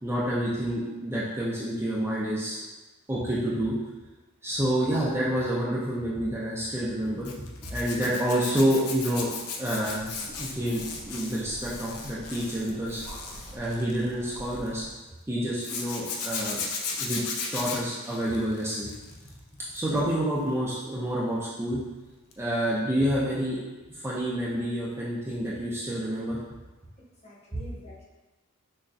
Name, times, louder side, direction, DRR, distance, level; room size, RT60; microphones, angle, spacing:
voice 1, 0.0-2.6 3.1-3.8 4.4-9.3 9.6-10.1 10.4-13.0 13.5-14.8 15.3-16.6 17.0-17.2 17.5-18.9 19.7-21.8 22.4-23.6 23.9-26.4 27.5-27.6, right 1 dB, 10° right, -7 dB, 0.5 m, -28 dB
Zipper (clothing), 7.2-14.7 15.6-19.3 19.6-20.0 22.3-22.5 22.7-22.8, left 5 dB, 80° left, 0.5 m, -36 dB
sound 1, 9.8-14.9, right 1 dB, 80° right, 0.7 m, -46 dB
voice 2, 27.0-28.0, left 1 dB, 30° left, -7 dB, 1.1 m, -48 dB
6.0 x 2.2 x 2.6 m, 1.1 s
head